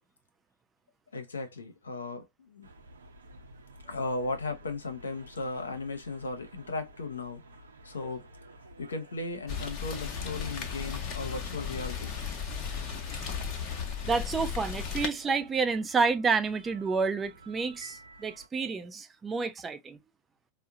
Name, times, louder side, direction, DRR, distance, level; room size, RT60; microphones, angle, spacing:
voice 1, 1.1-2.7 3.9-7.4 7.8-8.3 8.8-12.2, left 3 dB, 70° left, 0.8 m, -36 dB
sound 1, 2.6-18.5, right 1 dB, 75° right, 0.7 m, -53 dB
Rain, 9.5-15.1, left 6 dB, 35° left, 0.9 m, -35 dB
voice 2, 14.0-20.0, right 4 dB, 15° right, 0.4 m, -29 dB
4.5 x 2.1 x 2.5 m
figure-of-eight pair, 90°, 0 cm